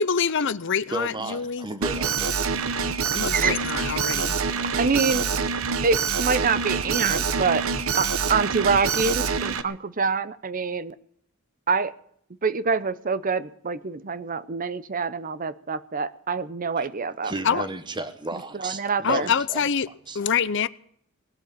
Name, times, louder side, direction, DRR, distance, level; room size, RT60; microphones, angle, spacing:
voice 1, 0.0-1.7 3.1-4.4 17.4-17.6 19.0-19.9 20.1-20.7, left 6 dB, 60° left, 0.7 m, -25 dB
voice 2, 0.9-2.3 16.8-16.9 17.2-19.6 20.1-20.2, right 2 dB, 20° right, 1.3 m, -34 dB
Alarm, 1.8-9.6, right 5 dB, 80° right, 1.0 m, -26 dB
voice 3, 3.3-3.6 4.6-5.3 5.8-7.6 8.0-10.9 11.7-11.9 12.4-17.7 18.5-19.3, right 5 dB, 40° right, 0.7 m, -26 dB
19.0 x 7.8 x 9.0 m
head